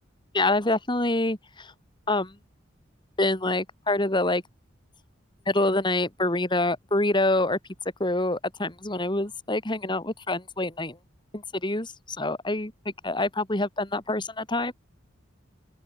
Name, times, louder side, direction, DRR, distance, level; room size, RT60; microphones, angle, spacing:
voice 1, 0.3-1.7 2.1-2.3 3.2-4.4 5.5-7.6 8.0-11.0 11.3-14.7, left 2 dB, 25° left, 3.0 m, -26 dB
open air
head